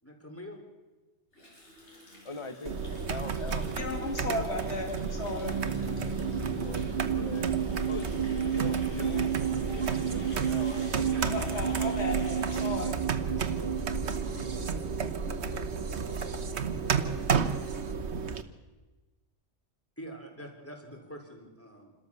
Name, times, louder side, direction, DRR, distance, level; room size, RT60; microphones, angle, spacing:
voice 1, 0.0-0.6 20.0-21.9, equal, 10° left, 1 dB, 3.9 m, -45 dB
Water tap faucet, 1.3-14.3 14.6-14.9 15.2-15.5 15.8-15.9 16.1-16.2 16.6-16.7 16.9-17.9, left 1 dB, 85° left, 6.2 m, -52 dB
voice 2, 2.2-3.8 6.1-7.6 7.9-11.1, left 3 dB, 25° left, 9 dB, 1.4 m, -42 dB
sound 1, 2.7-18.4, right 5 dB, 70° right, 1.3 m, -32 dB
voice 3, 3.7-5.6 11.2-13.0 13.4-13.5, left 2 dB, 70° left, 3 dB, 2.7 m, -35 dB
sound 2, 5.4-17.9, right 7 dB, 50° right, 1.5 m, -33 dB
28.5 x 13.0 x 7.0 m, 1.2 s
omnidirectional pair, 1.2 m